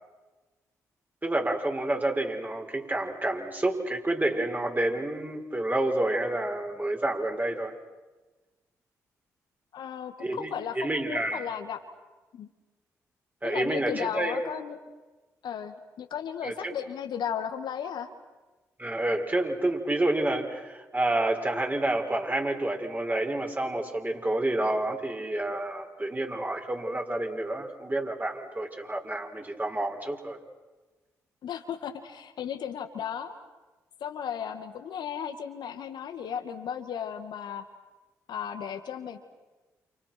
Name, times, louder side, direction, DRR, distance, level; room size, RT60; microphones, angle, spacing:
voice 1, 1.2-7.7 10.2-11.4 13.4-14.4 16.4-16.7 18.8-30.4, right 1 dB, 20° right, 2 dB, 5.9 m, -29 dB
voice 2, 9.7-11.8 12.3-12.5 13.4-14.8 15.4-18.1 31.4-33.3 34.0-37.6 38.3-39.2, left 8 dB, 65° left, 6 dB, 2.3 m, -35 dB
29.5 x 29.0 x 6.2 m, 1.2 s
hypercardioid pair, 40°, 8 cm